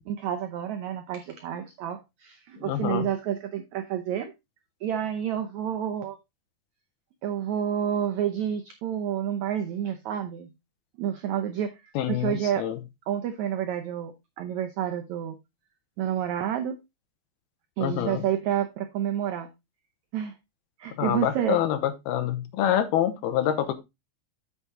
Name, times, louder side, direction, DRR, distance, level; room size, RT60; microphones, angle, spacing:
voice 1, 0.1-4.3 4.8-6.2 7.2-10.5 11.0-11.7 12.1-12.7 13.1-15.3 16.0-16.8 17.8-19.5 20.1-20.3 20.8-21.6, right 10 dB, 90° right, 1.6 m, -29 dB
voice 2, 2.6-3.1 12.0-12.8 17.8-18.2 21.0-23.7, left 11 dB, 80° left, 2.9 m, -26 dB
8.2 x 6.9 x 3.6 m
omnidirectional pair, 4.4 m